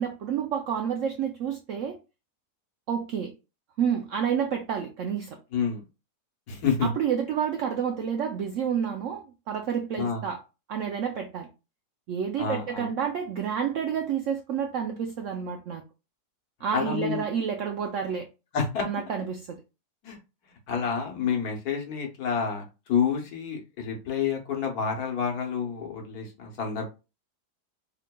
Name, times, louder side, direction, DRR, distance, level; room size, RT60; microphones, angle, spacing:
voice 1, 0.0-2.0 2.9-3.3 3.8-5.4 6.8-10.4 10.7-11.5 12.1-15.8 16.6-18.3 18.8-19.6, right 8 dB, 75° right, 0.7 m, -29 dB
voice 2, 5.5-5.8 6.5-6.9 10.0-10.2 12.4-12.9 16.7-17.2 18.5-18.8 20.0-20.2 20.7-26.8, left 6 dB, 65° left, 1.4 m, -28 dB
3.7 x 3.5 x 2.2 m
omnidirectional pair, 1.8 m